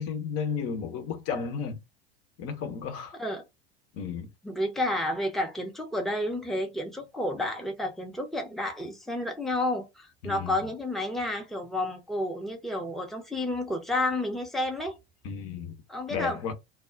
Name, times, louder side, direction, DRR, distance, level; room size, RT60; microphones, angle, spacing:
voice 1, 0.0-1.8 2.4-3.2 3.9-4.3 10.2-10.6 15.2-15.8 16.1-16.5, left 6 dB, 45° left, 0.9 m, -33 dB
voice 2, 4.4-15.0 15.9-16.4, left 1 dB, ahead, 0.8 m, -30 dB
2.3 x 2.0 x 3.7 m
hypercardioid pair, 80°, 32 cm